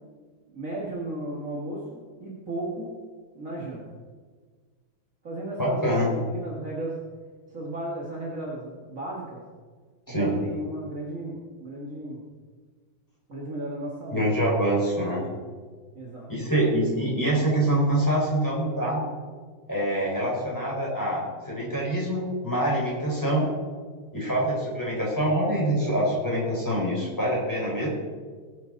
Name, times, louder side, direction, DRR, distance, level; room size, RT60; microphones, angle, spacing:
voice 1, 0.5-2.9 3.3-3.8 5.2-5.8 6.1-7.0 7.5-9.4 10.1-12.2 13.3-14.3 15.9-16.3, right 1 dB, 40° right, -5 dB, 2.2 m, -35 dB
voice 2, 5.6-6.1 10.1-10.3 14.1-15.3 16.3-19.0 19.7-23.5 24.1-27.9, right 1 dB, 10° left, -5 dB, 4.7 m, -25 dB
21.0 x 7.9 x 4.0 m, 1.5 s
omnidirectional pair, 2.3 m